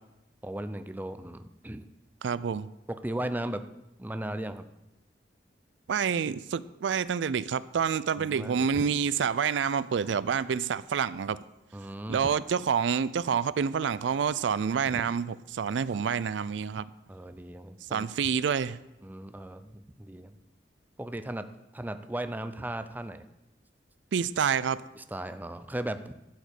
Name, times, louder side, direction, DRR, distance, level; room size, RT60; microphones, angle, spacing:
voice 1, 0.4-1.9 2.9-3.6 4.0-4.6 8.2-8.8 11.7-12.2 14.9-15.0 17.1-18.1 19.0-20.4 21.0-21.5 21.7-23.3 25.0-26.1, right 1 dB, 10° right, 10 dB, 0.5 m, -36 dB
voice 2, 2.2-2.7 5.9-11.4 12.1-16.8 17.9-18.8 24.1-24.8, right 7 dB, 70° right, 17 dB, 0.4 m, -28 dB
13.0 x 5.1 x 8.2 m, 0.92 s
head